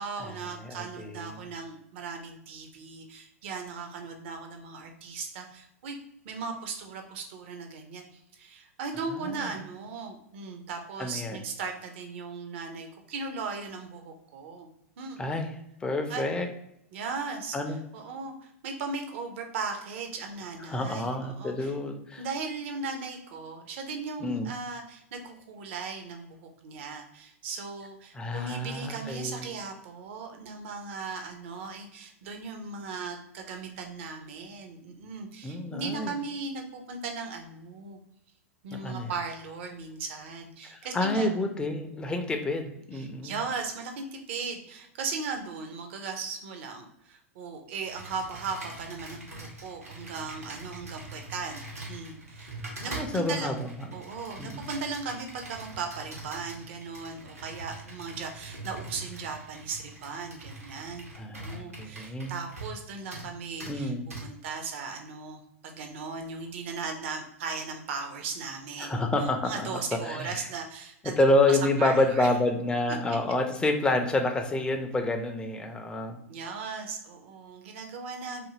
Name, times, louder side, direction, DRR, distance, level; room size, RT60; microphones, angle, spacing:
voice 1, 0.0-6.0 6.2-14.7 15.0-15.2 16.1-16.3 16.9-21.7 22.2-38.0 38.6-41.3 42.9-51.6 51.9-52.5 52.8-53.5 53.9-61.1 61.4-63.9 64.2-69.1 69.4-71.2 71.5-72.3 72.9-73.2 76.3-78.5, right 4 dB, 55° right, 5 dB, 0.6 m, -37 dB
voice 2, 0.6-1.3 9.2-9.5 11.0-11.4 15.2-15.5 15.8-16.5 17.5-17.8 20.7-22.2 24.2-24.5 28.1-29.4 35.4-36.1 38.7-39.1 40.7-43.3 53.0-53.7 54.4-54.7 61.2-62.3 63.7-64.0 68.8-70.4 71.2-76.2, left 2 dB, 10° left, 5 dB, 0.4 m, -28 dB
Computer keyboard, 47.8-62.8 63.1-63.3 63.6-63.7 64.1-64.2, right 2 dB, 85° right, 0.9 m, -43 dB
2.6 x 2.5 x 2.8 m, 0.77 s
figure-of-eight pair, 95°, 8 cm